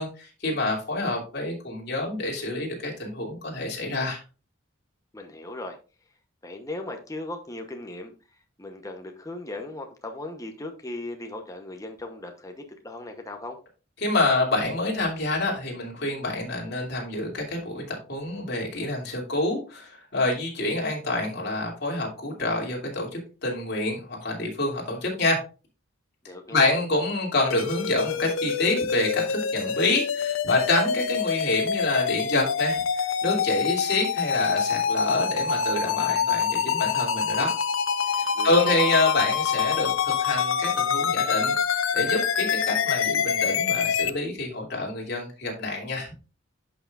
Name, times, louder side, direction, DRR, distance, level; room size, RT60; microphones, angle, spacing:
voice 1, 0.0-4.2 14.0-17.8 18.1-25.4 26.5-32.8 33.2-37.6 38.2-41.5 41.9-46.1, left 2 dB, 55° left, -1 dB, 2.8 m, -27 dB
voice 2, 5.1-5.8 6.4-8.1 8.6-13.6 26.3-26.8 38.3-39.0, left 2 dB, 15° left, 4 dB, 0.9 m, -37 dB
sound 1, 27.5-44.1, left 6 dB, 80° left, 0.6 m, -26 dB
11.0 x 5.7 x 2.5 m, 0.33 s
head